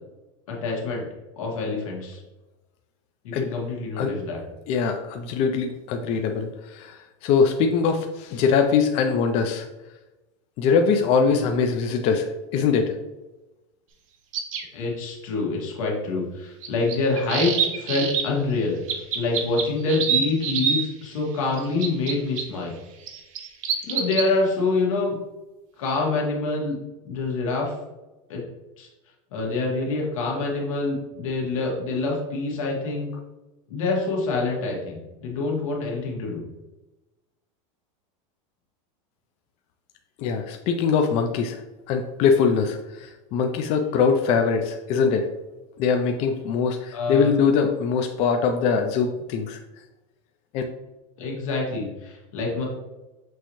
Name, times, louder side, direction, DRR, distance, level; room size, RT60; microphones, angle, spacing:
voice 1, 0.5-1.0 1.4-2.2 3.2-4.4 14.7-18.8 19.1-22.7 23.8-25.2 25.8-26.8 27.0-27.7 28.3-28.4 28.8-28.9 29.3-33.1 33.7-36.4 46.9-47.3 51.2-52.7, left 3 dB, 85° left, -1 dB, 1.5 m, -26 dB
voice 2, 4.7-7.0 7.2-9.7 10.6-12.9 40.2-41.6 41.9-45.3 45.8-49.6 50.5-50.6, left 5 dB, 40° left, 4 dB, 0.4 m, -22 dB
sound 1, 14.3-14.6 16.6-18.2 18.9-20.8 21.5-22.4 23.1-24.3, right 7 dB, 80° right, 0.9 m, -25 dB
6.2 x 2.7 x 3.0 m, 1.0 s
supercardioid pair, 150°, 17 cm